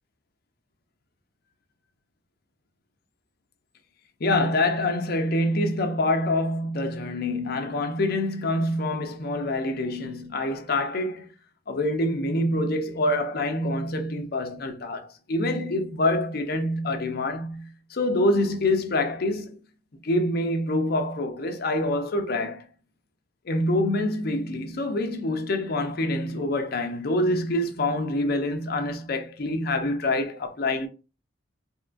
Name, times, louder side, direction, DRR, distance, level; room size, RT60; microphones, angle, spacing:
voice 1, 4.2-11.3 11.7-19.6 20.0-22.6 23.5-30.9, left 1 dB, 50° left, 0.5 m, -26 dB
3.6 x 2.2 x 2.4 m
head